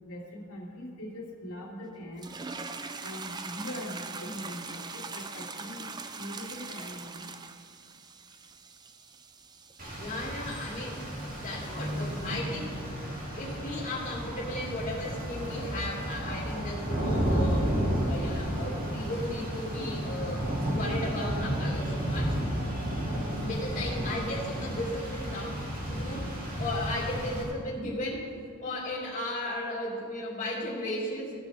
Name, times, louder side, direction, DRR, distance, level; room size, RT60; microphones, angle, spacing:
voice 1, 0.0-2.3 3.0-5.9 6.2-7.3, left 1 dB, 80° left, -4 dB, 2.5 m, -41 dB
sound 1, 2.2-12.4, right 4 dB, 20° right, 0.4 m, -43 dB
Rain, 9.8-27.4, equal, 40° right, 2.3 m, -32 dB
voice 2, 10.0-12.8 13.4-17.8 18.1-22.4 23.4-26.3 26.6-28.3 28.6-31.3, left 1 dB, 35° left, -5 dB, 2.5 m, -35 dB
17.5 x 6.3 x 4.9 m, 2.3 s
head